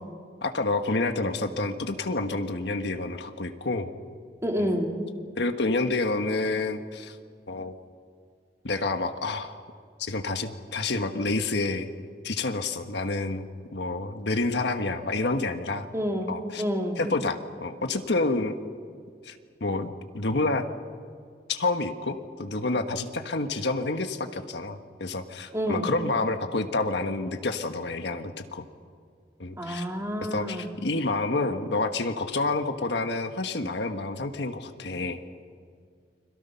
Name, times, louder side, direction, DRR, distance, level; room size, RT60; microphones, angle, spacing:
voice 1, 0.4-3.9 4.6-4.8 5.4-7.2 7.5-7.7 8.6-9.5 10.0-11.9 12.2-13.5 13.7-15.9 16.3-16.6 17.0-18.6 19.2-19.9 20.1-20.6 21.5-28.6 29.4-29.8 30.3-35.2, left 3 dB, 70° left, 7 dB, 1.4 m, -28 dB
voice 2, 4.4-4.9 15.9-17.0 25.5-25.9 29.6-30.7, equal, 15° right, 2 dB, 2.7 m, -28 dB
30.0 x 22.5 x 5.7 m, 2.2 s
head